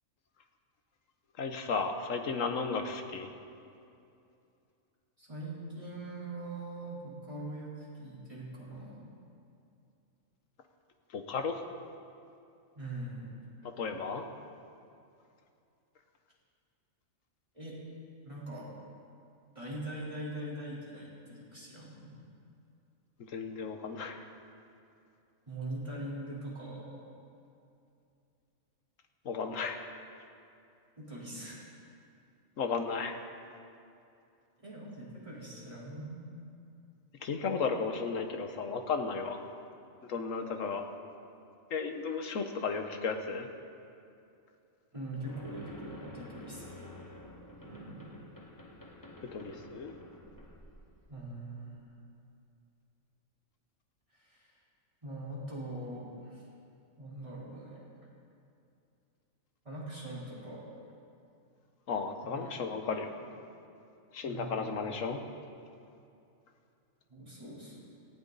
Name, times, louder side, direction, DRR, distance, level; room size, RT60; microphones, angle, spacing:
voice 1, 1.4-3.3 11.1-11.6 13.8-14.2 23.3-24.2 29.2-29.8 32.6-33.1 37.2-39.4 40.1-40.8 41.7-43.5 49.3-49.9 61.9-63.1 64.1-65.2, left 5 dB, 70° left, 6 dB, 1.4 m, -34 dB
voice 2, 5.2-9.1 12.7-13.3 17.5-17.8 18.2-18.7 19.5-22.2 25.5-27.0 31.0-31.7 34.6-36.3 44.9-47.1 47.6-48.1 51.1-51.8 54.1-54.5 55.0-56.4 57.0-57.8 59.6-60.6 62.2-62.5 64.3-64.7 67.1-67.8, right 1 dB, 25° right, -7 dB, 3.9 m, -42 dB
sound 1, 45.3-51.3, left 1 dB, 15° left, 1.1 m, -50 dB
18.0 x 15.0 x 4.0 m, 2.6 s
omnidirectional pair, 1.4 m